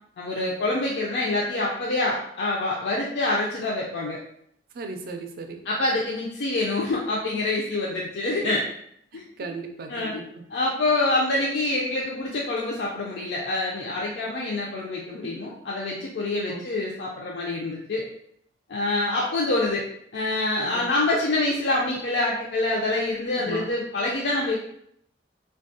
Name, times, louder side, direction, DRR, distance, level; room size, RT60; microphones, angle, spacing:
voice 1, 0.2-4.2 5.7-8.7 9.1-9.2 9.9-10.2 10.5-18.0 18.7-19.8 20.1-24.6, left 2 dB, 75° left, -3 dB, 0.4 m, -26 dB
voice 2, 4.7-5.6 9.1-10.4 16.5-16.6 20.6-20.9 23.4-23.7, right 3 dB, 55° right, 5 dB, 0.4 m, -37 dB
3.4 x 2.3 x 2.6 m, 0.71 s
head